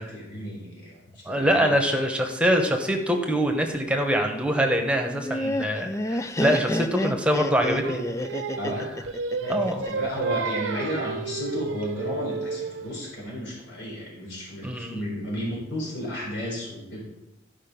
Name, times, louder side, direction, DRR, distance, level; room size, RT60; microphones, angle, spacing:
voice 1, 0.0-1.8 8.6-8.9 9.3-9.6 9.9-17.0, equal, 75° left, -3 dB, 3.9 m, -33 dB
voice 2, 1.2-8.0 9.5-9.8 14.6-15.0, equal, 5° right, 3 dB, 1.1 m, -24 dB
Laughter, 5.0-10.1, left 1 dB, 15° left, 0.4 m, -29 dB
Singing, 7.8-13.0, right 4 dB, 85° right, 0.6 m, -32 dB
13.5 x 5.3 x 5.3 m, 0.95 s
head